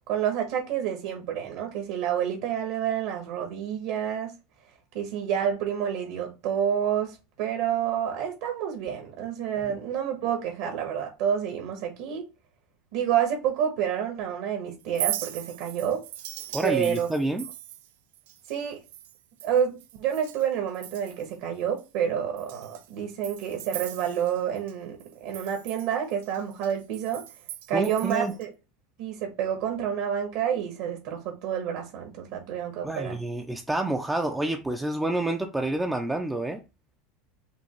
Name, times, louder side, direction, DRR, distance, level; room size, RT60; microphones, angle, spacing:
voice 1, 0.1-4.3 4.9-12.2 12.9-16.0 16.6-17.1 18.5-18.8 19.4-27.2 27.7-28.5 29.0-33.2, right 9 dB, 55° right, 1.2 m, -29 dB
Chink clink, 14.8-20.5 20.7-21.4 21.8-21.9 22.4-24.7 25.0-28.5, right 13 dB, 80° right, 0.6 m, -39 dB
voice 2, 16.5-17.5 27.7-28.3 32.8-36.6, right 1 dB, 5° right, 0.4 m, -28 dB
5.2 x 2.8 x 3.0 m
supercardioid pair, 170°, 0 cm